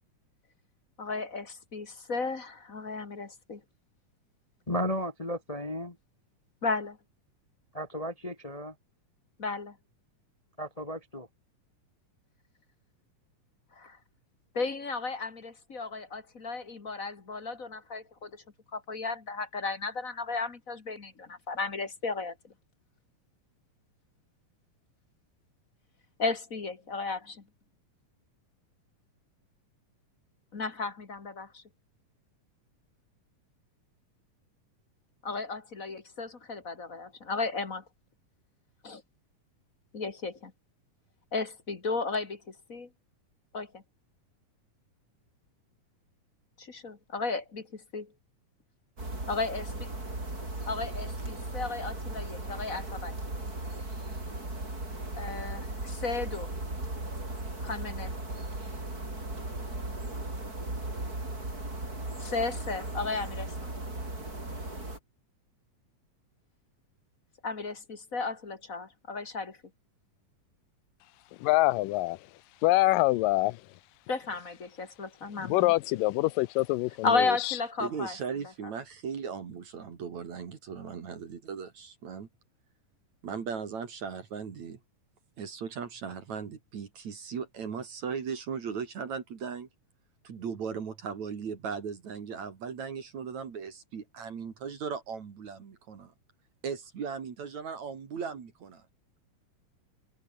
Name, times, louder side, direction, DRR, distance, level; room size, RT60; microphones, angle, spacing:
voice 1, 1.0-3.6 6.6-7.0 9.4-9.8 13.8-14.0 14.5-18.3 18.7-22.5 26.2-27.4 30.5-31.6 35.2-37.8 38.8-39.0 39.9-40.5 41.3-42.4 42.7-42.9 43.5-43.8 46.6-48.1 49.3-49.6 50.7-53.1 55.1-56.5 57.6-58.1 62.2-63.7 67.4-69.6 74.1-75.7 77.0-78.1, left 4 dB, 30° left, 1.8 m, -34 dB
voice 2, 4.7-6.0 7.7-8.7 10.6-11.3, equal, 50° left, 0.4 m, -34 dB
sound 1, 49.0-65.0, right 2 dB, 25° right, 7.4 m, -37 dB
voice 3, 71.4-72.2 72.6-73.6 75.4-77.6, left 19 dB, 90° left, 2.3 m, -25 dB
voice 4, 77.8-82.3 83.2-84.8 85.4-89.7 90.2-96.1 96.6-98.9, right 6 dB, 55° right, 3.8 m, -37 dB
omnidirectional pair, 3.8 m